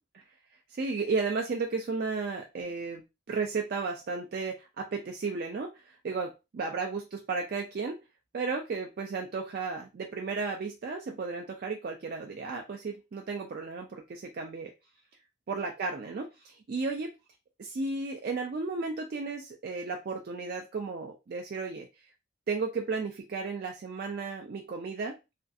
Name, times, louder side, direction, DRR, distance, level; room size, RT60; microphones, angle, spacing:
voice 1, 0.7-8.0 8.3-14.7 15.5-17.1 17.6-21.9 22.5-25.2, right 4 dB, 45° right, 1 dB, 0.3 m, -34 dB
2.5 x 2.3 x 2.5 m, 0.26 s
head